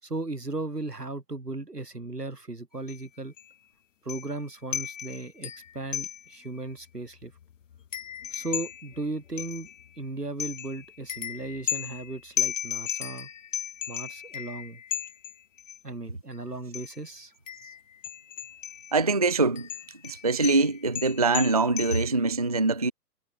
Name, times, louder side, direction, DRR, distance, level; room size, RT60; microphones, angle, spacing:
voice 1, 0.0-3.3 4.0-7.3 8.3-9.7 10.0-13.3 13.9-14.8 15.8-17.3, right 2 dB, 85° right, 4.4 m, -36 dB
sound 1, 2.9-3.1 3.4-3.5 4.1-4.4 4.7-6.5 6.9-7.0 7.2-10.0 10.4-15.8 16.7-17.0 17.5-19.0 19.6-22.0, left 9 dB, 50° left, 2.9 m, -35 dB
voice 2, 18.9-19.7 20.0-22.9, right 3 dB, 25° right, 0.4 m, -23 dB
figure-of-eight pair, 125°, 47 cm